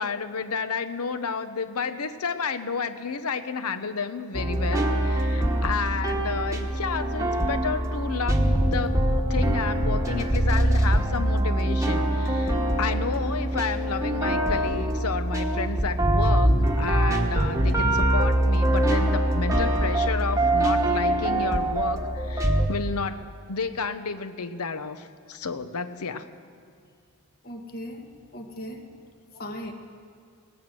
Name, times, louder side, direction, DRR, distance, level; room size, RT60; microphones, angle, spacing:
voice 1, 0.0-9.0 9.3-26.3, left 5 dB, 80° left, 11 dB, 0.8 m, -31 dB
sound 1, 4.3-22.7, right 1 dB, 15° right, 1.1 m, -23 dB
voice 2, 27.4-28.0 28.3-28.8 29.4-29.7, equal, 45° left, 4 dB, 1.5 m, -37 dB
17.5 x 10.5 x 7.7 m, 2.1 s
head